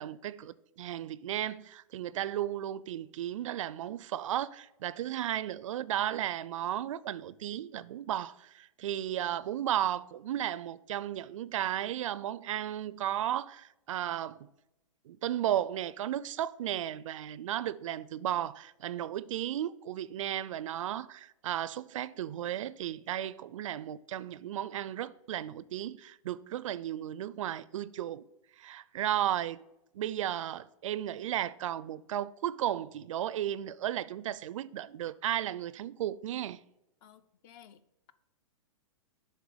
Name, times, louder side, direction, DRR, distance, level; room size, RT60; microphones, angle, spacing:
voice 1, 0.0-14.5 15.1-28.3 28.6-29.6 29.9-36.6, right 11 dB, 70° right, 0.4 m, -34 dB
voice 2, 37.0-38.1, left 9 dB, 40° left, 0.5 m, -57 dB
7.3 x 3.4 x 6.2 m
hypercardioid pair, 130°, 17 cm